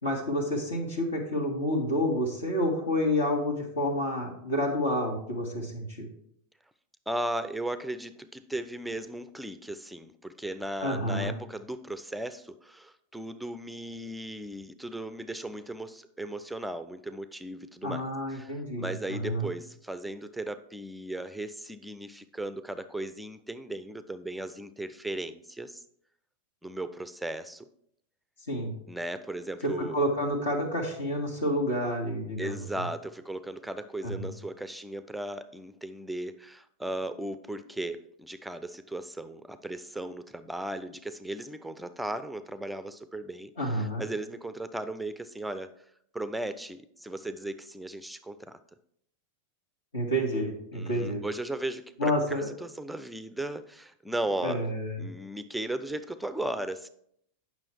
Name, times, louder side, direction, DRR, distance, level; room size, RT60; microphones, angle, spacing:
voice 1, 0.0-6.1 10.8-11.3 17.8-19.5 28.5-28.7 29.6-32.8 34.0-34.3 43.6-44.0 49.9-51.2 52.0-52.5 54.4-55.0, equal, 65° left, -2 dB, 1.9 m, -29 dB
voice 2, 7.1-18.0 18.3-25.8 26.6-27.6 28.9-30.0 32.4-45.7 46.1-48.6 50.7-54.6 55.0-56.9, right 1 dB, 5° right, 12 dB, 0.5 m, -36 dB
8.8 x 6.1 x 4.5 m, 0.70 s
figure-of-eight pair, 90°, 0 cm